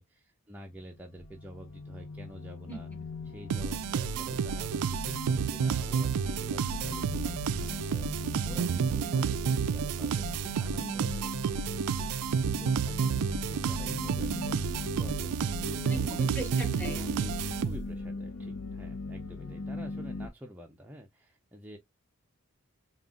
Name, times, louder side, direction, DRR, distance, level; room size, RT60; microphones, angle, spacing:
voice 1, 0.0-2.9 3.3-12.1 12.6-14.6 15.0-16.3 17.6-21.8, right 1 dB, 10° right, 0.6 m, -48 dB
sound 1, 0.8-20.3, left 3 dB, 60° left, 0.7 m, -40 dB
sound 2, 3.5-18.1, right 6 dB, 85° right, 0.4 m, -30 dB
voice 2, 9.0-9.3 15.9-17.4 19.4-19.6, equal, 5° left, 1.5 m, -41 dB
5.4 x 2.4 x 2.4 m
head